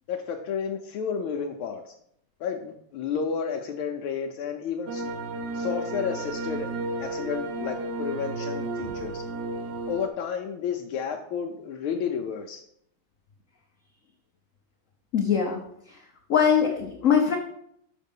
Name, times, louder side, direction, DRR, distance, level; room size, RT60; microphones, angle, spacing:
voice 1, 0.1-1.9 2.4-5.1 5.5-6.7 7.0-9.2 9.9-12.6, left 6 dB, 80° left, 3 dB, 1.5 m, -31 dB
sound 1, 4.9-10.1, right 2 dB, 65° right, 1.2 m, -33 dB
voice 2, 15.1-15.6 15.9-16.0 16.3-17.4, left 7 dB, 60° left, 1 dB, 0.8 m, -22 dB
6.5 x 5.1 x 5.3 m, 0.71 s
omnidirectional pair, 2.3 m